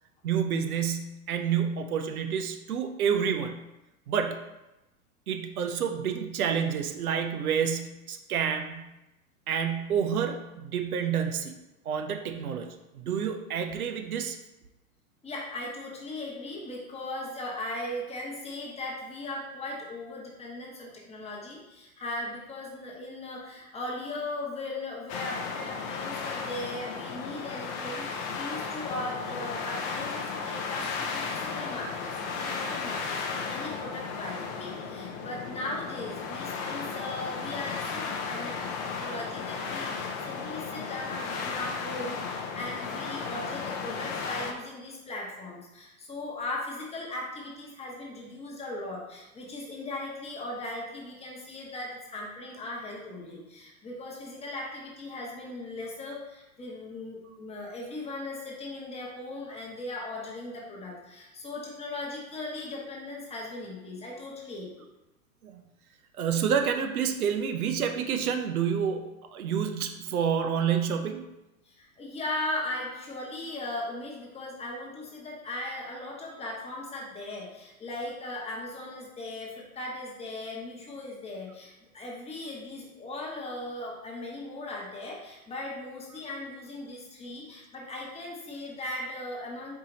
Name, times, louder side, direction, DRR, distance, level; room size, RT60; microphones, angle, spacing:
voice 1, 0.2-3.6 4.1-4.4 5.3-8.9 9.5-11.5 11.9-12.7 12.9-14.4 65.4-65.6 66.2-71.3, right 7 dB, 85° right, 6 dB, 0.7 m, -29 dB
voice 2, 15.2-64.7 71.6-89.7, left 2 dB, 15° left, -3 dB, 1.0 m, -38 dB
sound 1, 25.1-44.5, left 5 dB, 30° left, 0.5 m, -35 dB
4.7 x 2.8 x 3.8 m, 0.97 s
hypercardioid pair, 115°, 42 cm